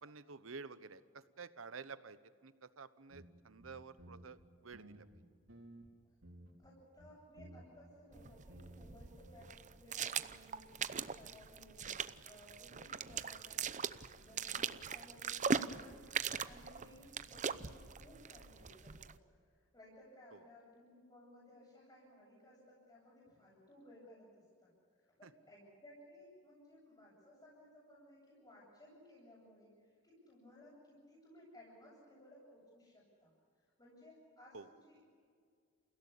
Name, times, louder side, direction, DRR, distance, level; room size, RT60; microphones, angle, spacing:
voice 1, 0.0-4.4 4.6-5.2 13.0-13.2 20.3-20.4 25.2-25.3 34.5-34.7, right 4 dB, 90° right, 14 dB, 1.1 m, -51 dB
sound 1, 3.1-3.3 3.6-4.4 4.7-5.9 6.2-6.7 7.0-8.9 9.2-9.5, right 1 dB, 70° right, 4.0 m, -56 dB
voice 2, 6.6-16.1 16.4-24.7 25.0-33.3 33.6-35.1, left 1 dB, 20° left, -8 dB, 7.9 m, -60 dB
sound 2, 8.1-19.2, right 6 dB, 40° right, 0.7 m, -41 dB
29.5 x 16.5 x 8.6 m, 2.1 s
head